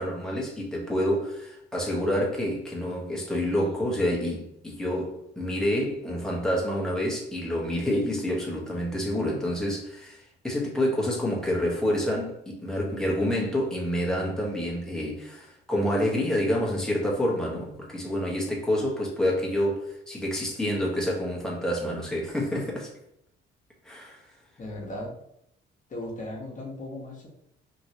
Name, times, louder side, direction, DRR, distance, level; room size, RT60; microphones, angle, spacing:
voice 1, 0.0-22.9 23.8-24.2, equal, 5° left, 1.1 m, -28 dB
voice 2, 24.6-25.1 25.9-27.3, left 1 dB, 40° left, 1.1 m, -36 dB
3.0 x 2.9 x 2.8 m
cardioid pair, 90°, 20 cm